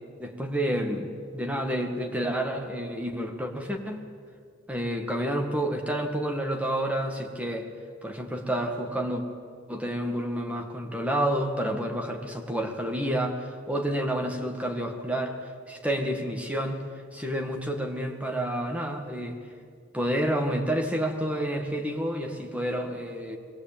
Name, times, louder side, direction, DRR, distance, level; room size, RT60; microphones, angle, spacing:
voice 1, 0.2-4.0 4.7-7.7 8.0-9.2 9.7-15.3 15.7-16.8 17.1-19.4 19.9-23.4, right 1 dB, 5° right, 3 dB, 2.0 m, -29 dB
22.5 x 16.5 x 8.9 m, 2.1 s
head